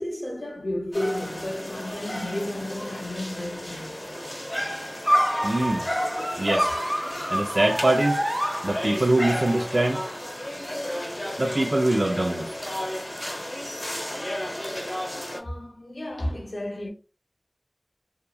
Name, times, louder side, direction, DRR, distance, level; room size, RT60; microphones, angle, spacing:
voice 1, 0.0-4.8 12.9-13.0 15.3-16.9, left 1 dB, 80° left, 0.4 m, -33 dB
sound 1, 0.9-15.4, equal, 35° left, 0.7 m, -33 dB
sound 2, 5.0-9.2, equal, 15° right, 0.8 m, -27 dB
voice 2, 5.4-5.9 6.4-6.7 7.3-8.2 8.6-10.0 11.4-12.5, right 1 dB, 65° right, 0.4 m, -23 dB
2.9 x 2.3 x 2.2 m
wide cardioid pair, 45°, 0 cm